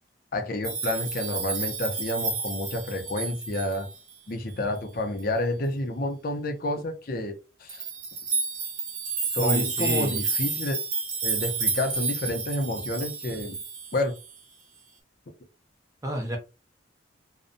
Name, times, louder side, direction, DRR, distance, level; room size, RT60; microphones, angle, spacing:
voice 1, 0.3-3.9 4.3-7.8 9.3-10.8 11.2-13.6 13.9-14.1, left 1 dB, 50° left, 0.5 m, -29 dB
sound 1, 0.6-4.1 4.8-4.9 5.2-5.3 7.7-14.3, right 5 dB, 45° right, 0.8 m, -30 dB
voice 2, 9.4-10.2 16.0-16.4, right 1 dB, 15° right, 0.4 m, -30 dB
2.6 x 2.1 x 2.5 m
head